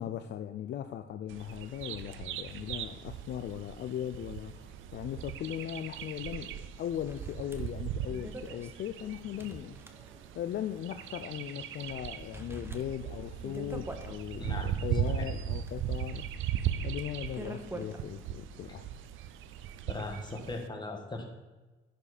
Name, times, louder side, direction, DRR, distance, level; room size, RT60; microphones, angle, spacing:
voice 1, 0.0-9.8 10.3-16.3 16.8-18.9, left 10 dB, 60° left, 9 dB, 0.4 m, -38 dB
Bird vocalization bird call bird song, 1.3-20.7, right 10 dB, 80° right, 0.5 m, -38 dB
sound 1, 6.0-6.1 6.3-6.4 7.1-10.5 10.8-10.9 11.5-11.9 12.3-14.2 14.7-18.0, right 2 dB, 10° right, 0.8 m, -46 dB
voice 2, 14.4-14.8 15.2-15.3 19.9-21.3, left 2 dB, 20° left, 3 dB, 1.5 m, -38 dB
10.5 x 5.2 x 4.2 m, 1.2 s
cardioid pair, 90°, 20 cm